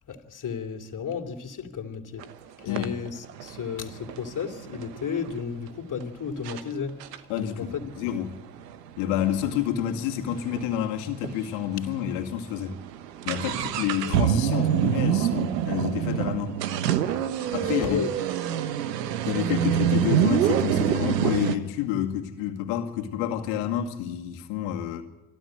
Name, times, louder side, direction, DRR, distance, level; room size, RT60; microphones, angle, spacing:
voice 1, 0.1-2.2 2.6-7.0 7.4-7.9 14.0-14.3 17.4-18.1, left 6 dB, 40° left, 3.1 m, -33 dB
sound 1, 2.2-2.3 2.8-5.4 6.0-6.1 6.5-6.6 7.0-10.7 11.0-11.1 11.2-11.4 12.0-12.1 12.4-21.6, right 10 dB, 85° right, 1.2 m, -26 dB
voice 2, 2.7-3.0 7.3-8.4 9.0-12.8 13.3-16.6 17.5-18.1 19.2-25.0, left 10 dB, 70° left, 2.3 m, -29 dB
27.0 x 12.5 x 9.1 m
hypercardioid pair, 55°, 48 cm